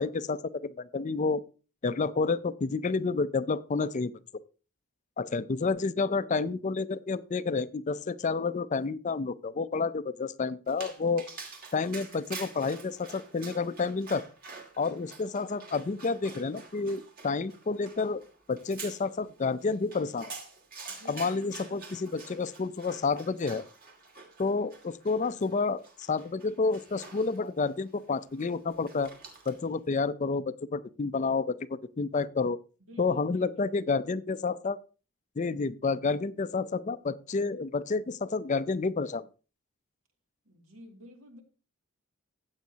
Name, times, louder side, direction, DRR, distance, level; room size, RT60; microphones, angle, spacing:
voice 1, 0.0-1.4 1.8-4.1 5.2-11.3 11.7-14.2 14.8-18.2 18.5-20.3 21.1-23.6 24.4-29.1 29.5-32.6 33.0-34.8 35.4-39.3, left 4 dB, 35° left, 0.4 m, -30 dB
Dog, 10.7-29.7, right 4 dB, 45° right, 2.2 m, -48 dB
voice 2, 21.0-21.3 21.6-21.8 32.8-33.5 40.4-41.4, equal, 80° right, 2.4 m, -52 dB
15.0 x 8.2 x 2.8 m
head